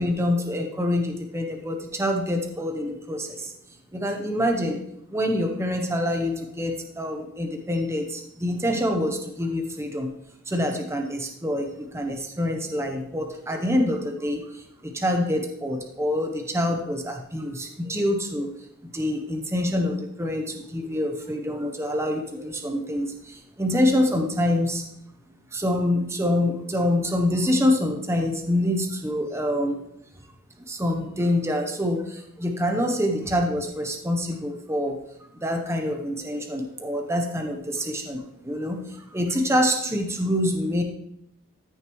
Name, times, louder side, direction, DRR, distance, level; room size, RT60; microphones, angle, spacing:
voice 1, 0.0-3.5 3.9-4.8 5.1-10.1 10.5-24.8 25.5-29.8 30.7-40.8, left 1 dB, 10° right, 3 dB, 0.8 m, -26 dB
13.5 x 6.5 x 3.1 m, 0.76 s
head